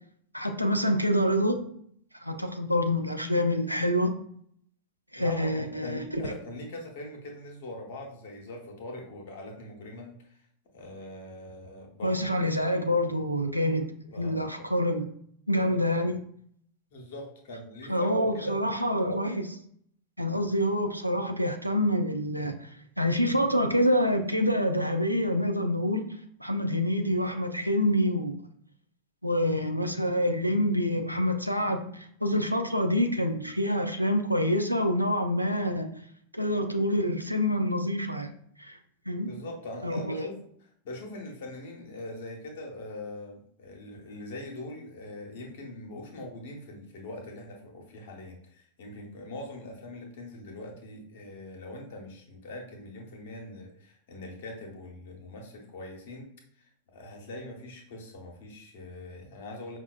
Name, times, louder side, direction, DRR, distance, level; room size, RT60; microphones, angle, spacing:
voice 1, 0.3-1.6 2.2-4.2 5.1-6.3 12.0-13.9 14.2-15.1 15.5-16.2 17.9-19.6 20.2-22.7 23.0-26.0 26.4-28.3 29.2-35.9 36.3-38.3 38.6-38.8 39.1-39.3 39.8-40.3, equal, 90° right, 5 dB, 0.4 m, -26 dB
voice 2, 5.2-10.4 10.7-12.3 14.0-14.7 16.9-18.8 20.4-20.5 39.2-40.5 40.8-56.3 56.6-59.8, left 1 dB, 55° left, 1 dB, 0.9 m, -42 dB
5.5 x 2.4 x 2.3 m, 0.64 s
figure-of-eight pair, 90°, 0 cm